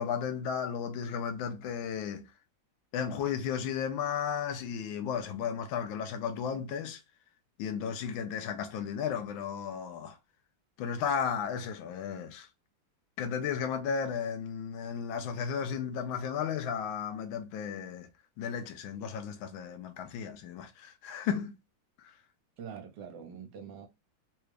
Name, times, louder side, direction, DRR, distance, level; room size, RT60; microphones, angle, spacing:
voice 1, 0.0-2.3 2.9-7.0 7.6-10.2 10.8-12.5 13.2-18.1 18.4-21.6 22.0-22.1, left 7 dB, 80° left, 1.4 m, -34 dB
voice 2, 22.6-23.9, right 7 dB, 65° right, 1.4 m, -44 dB
3.9 x 2.3 x 3.2 m
omnidirectional pair, 2.1 m